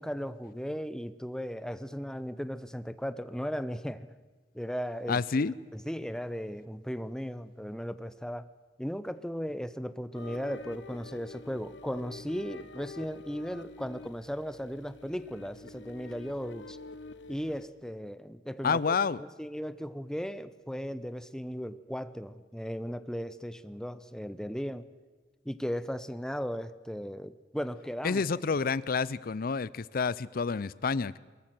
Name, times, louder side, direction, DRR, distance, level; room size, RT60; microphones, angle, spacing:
voice 1, 0.0-4.1 4.5-5.2 5.7-8.5 8.8-16.8 17.3-24.9 25.4-28.2, equal, 5° left, 14 dB, 0.6 m, -36 dB
voice 2, 5.1-5.5 18.6-19.2 28.0-31.2, left 5 dB, 50° left, 20 dB, 0.5 m, -29 dB
sound 1, 10.1-17.7, left 3 dB, 70° left, 1.0 m, -47 dB
23.5 x 14.0 x 7.7 m, 1.4 s
head